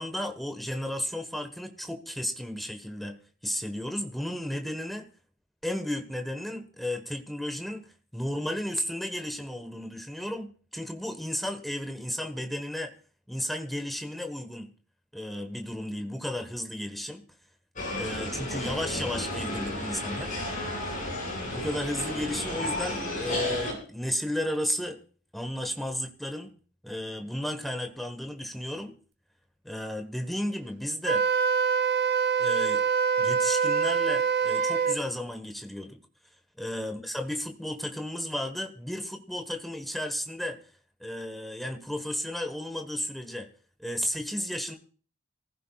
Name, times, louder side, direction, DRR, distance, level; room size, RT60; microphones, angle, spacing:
voice 1, 0.0-3.2 3.4-5.1 5.6-12.9 13.3-14.7 15.1-17.2 17.9-20.3 21.5-25.0 25.3-26.5 26.8-28.9 29.6-31.2 32.4-32.8 33.2-36.0 36.6-40.6 41.0-43.5 43.8-44.8, left 1 dB, ahead, 4 dB, 1.3 m, -33 dB
sound 1, 17.8-23.7, left 1 dB, 40° left, 7.7 m, -33 dB
Wind instrument woodwind instrument, 31.0-35.0, right 6 dB, 55° right, 0.9 m, -25 dB
25.5 x 15.0 x 2.4 m, 0.42 s
head